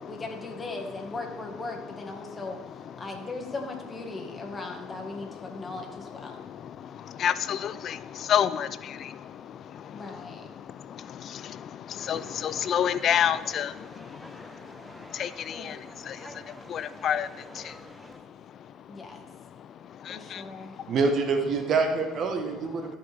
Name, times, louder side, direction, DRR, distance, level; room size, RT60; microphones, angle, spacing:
voice 1, 0.0-2.6 3.0-6.4 9.9-10.5 15.5-15.9 18.9-19.2 20.1-20.8, left 2 dB, 25° left, 3 dB, 1.7 m, -38 dB
voice 2, 7.2-8.0 8.3-8.7 12.1-13.7 15.2-15.7 16.7-17.3 20.3-20.4, left 9 dB, 55° left, 15 dB, 0.4 m, -26 dB
sound 1, 12.0-18.2, right 1 dB, 5° right, 0.9 m, -48 dB
voice 3, 20.9-22.9, right 4 dB, 55° right, 5 dB, 1.2 m, -26 dB
13.5 x 5.6 x 3.5 m, 1.2 s
supercardioid pair, 80°, 0 cm